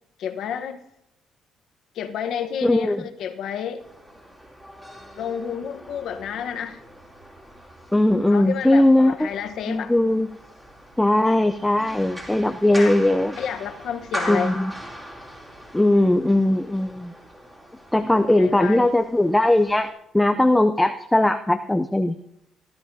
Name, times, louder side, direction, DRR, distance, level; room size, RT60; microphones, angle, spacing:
voice 1, 0.2-0.8 1.9-3.8 5.2-6.8 8.3-9.9 12.7-12.9 13.4-14.6 18.2-18.9, left 8 dB, 65° left, 7 dB, 1.0 m, -30 dB
voice 2, 2.6-3.0 7.9-9.3 9.7-10.3 11.0-13.3 14.3-14.7 15.7-17.1 17.9-19.9 20.1-22.2, left 1 dB, 5° left, 8 dB, 0.5 m, -19 dB
sound 1, 3.8-19.9, equal, 10° right, 3.0 m, -40 dB
18.0 x 12.5 x 2.7 m, 0.80 s
cardioid pair, 115°, 0 cm